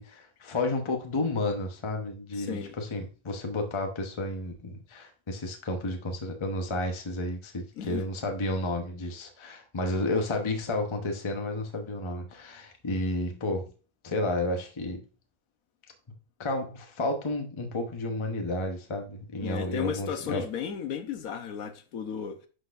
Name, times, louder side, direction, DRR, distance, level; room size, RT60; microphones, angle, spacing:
voice 1, 0.0-13.6 14.0-15.0 16.4-20.4, left 2 dB, 25° left, 0.8 m, -31 dB
voice 2, 2.4-2.7 7.8-8.0 19.4-22.5, left 8 dB, 80° left, 1.3 m, -34 dB
11.0 x 4.0 x 2.5 m
omnidirectional pair, 1.5 m